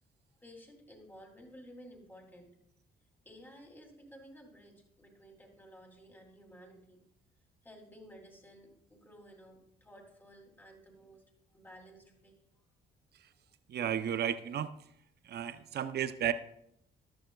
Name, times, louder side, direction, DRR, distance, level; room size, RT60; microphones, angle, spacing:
voice 1, 0.4-2.5 3.2-7.0 7.6-11.2 11.5-12.3, equal, 10° left, 1 dB, 2.9 m, -54 dB
voice 2, 13.7-14.7 15.2-16.3, right 9 dB, 55° right, 11 dB, 0.7 m, -33 dB
14.0 x 11.5 x 2.3 m, 0.74 s
cardioid pair, 90°, 20 cm